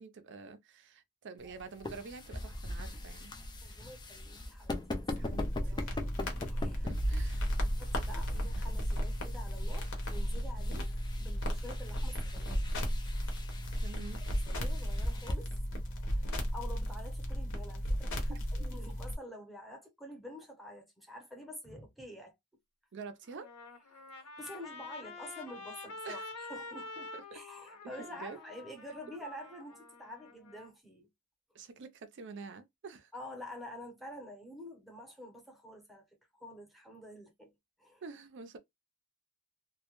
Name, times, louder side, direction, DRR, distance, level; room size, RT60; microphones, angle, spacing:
voice 1, 0.0-3.8 5.2-6.0 6.7-7.5 13.8-14.2 18.3-18.4 22.9-23.5 26.0-26.2 27.1-27.4 28.0-28.4 31.5-33.1 38.0-38.6, right 4 dB, 55° right, 0.5 m, -48 dB
sound 1, 1.4-15.3, left 2 dB, 20° left, 0.3 m, -43 dB
voice 2, 3.6-4.8 5.2-6.8 7.8-12.6 13.0-13.1 14.3-15.5 15.9-22.3 24.0-31.1 33.1-37.5 37.8-38.0, left 1 dB, ahead, 0.7 m, -48 dB
sound 2, 5.1-19.1, equal, 60° left, 0.8 m, -34 dB
Trumpet, 23.2-30.7, left 2 dB, 85° left, 1.0 m, -47 dB
2.2 x 2.1 x 2.9 m
head